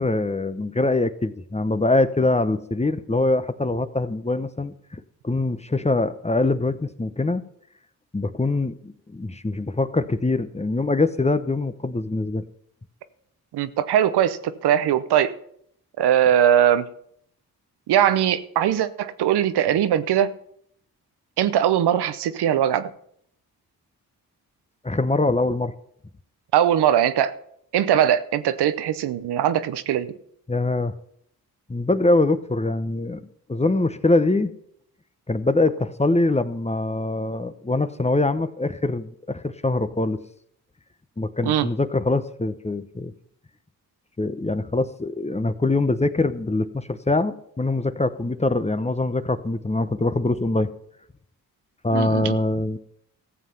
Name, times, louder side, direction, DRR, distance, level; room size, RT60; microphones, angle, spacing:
voice 1, 0.0-7.4 8.1-12.4 24.8-25.7 30.5-30.9 31.7-33.2 33.5-34.5 35.3-40.2 41.2-43.1 44.2-50.7 51.8-52.8, left 2 dB, 15° left, 0.9 m, -23 dB
voice 2, 13.5-15.3 16.0-16.9 17.9-20.3 21.4-22.9 26.5-27.3 27.7-30.1 41.4-41.7 51.9-52.4, right 10 dB, 90° right, 0.8 m, -20 dB
14.0 x 7.5 x 5.7 m
supercardioid pair, 50°, 38 cm